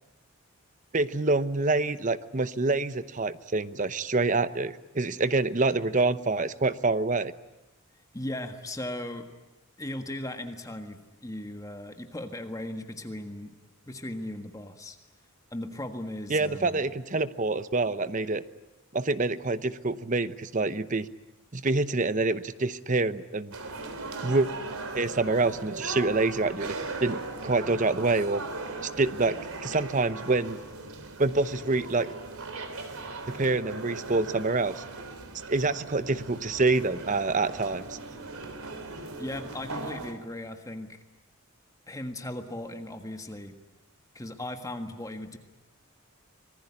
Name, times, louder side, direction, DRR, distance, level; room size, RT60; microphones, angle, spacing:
voice 1, 0.9-7.3 16.3-18.4 18.9-21.1 21.5-23.5 24.2-24.5 24.9-26.8 27.0-28.4 29.0-30.6 31.2-32.1 33.3-34.8 35.5-38.0, right 3 dB, 35° right, 14 dB, 0.8 m, -26 dB
voice 2, 8.1-9.3 9.8-13.5 13.9-15.0 15.5-16.8 39.2-41.0 41.9-43.6 44.1-45.4, left 1 dB, 15° left, 6 dB, 1.6 m, -37 dB
sound 1, 23.5-40.1, right 3 dB, 85° right, 3.4 m, -39 dB
25.5 x 19.5 x 9.8 m, 0.97 s
head